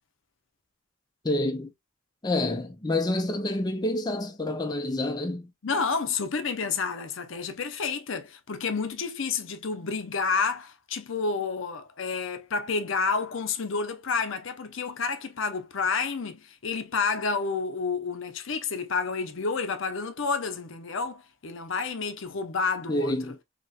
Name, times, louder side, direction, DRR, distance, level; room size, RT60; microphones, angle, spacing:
voice 1, 1.2-1.7 2.2-5.5 22.9-23.4, left 1 dB, 20° left, 0.5 m, -28 dB
voice 2, 5.6-23.1, left 4 dB, 65° left, 0.7 m, -30 dB
4.1 x 2.9 x 2.3 m
head